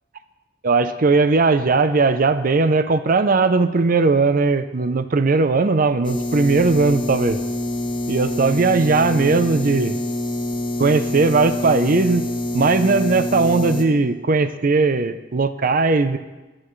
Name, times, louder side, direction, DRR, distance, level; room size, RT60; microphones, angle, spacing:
voice 1, 0.6-7.4 8.1-10.0 10.8-12.3 12.5-16.2, right 3 dB, 50° right, 11 dB, 0.6 m, -18 dB
sound 1, 6.0-13.8, left 1 dB, 25° left, 1.3 m, -26 dB
24.5 x 8.8 x 3.2 m, 1.2 s
head